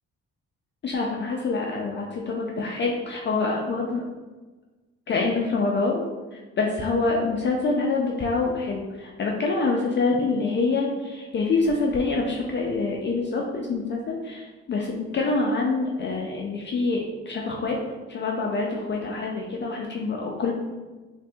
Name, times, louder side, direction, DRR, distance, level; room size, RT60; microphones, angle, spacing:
voice 1, 0.8-4.0 5.1-6.0 6.3-17.8 18.1-20.5, left 3 dB, 40° left, -1 dB, 0.4 m, -26 dB
4.0 x 2.5 x 2.3 m, 1.3 s
cardioid pair, 90°, 30 cm